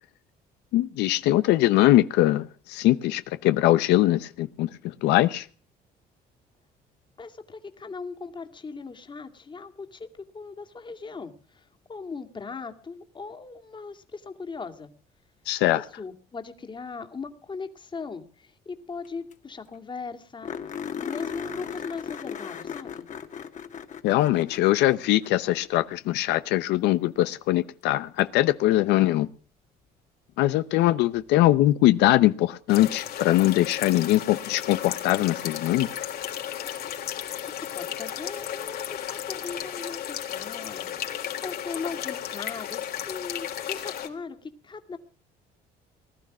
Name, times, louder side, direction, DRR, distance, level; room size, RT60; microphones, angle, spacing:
voice 1, 0.7-5.5 15.5-15.8 24.0-29.3 30.4-35.9, left 15 dB, 85° left, 0.7 m, -22 dB
voice 2, 7.2-14.9 15.7-23.1 37.4-45.0, left 4 dB, 30° left, 2.2 m, -39 dB
sound 1, 19.0-19.1 19.3-19.4 19.7-19.8 20.4-25.9 28.2-28.3 31.1-31.2, left 7 dB, 45° left, 1.9 m, -37 dB
sound 2, 32.7-44.1, left 10 dB, 65° left, 3.6 m, -34 dB
20.0 x 12.0 x 6.1 m
cardioid pair, 110°, 17 cm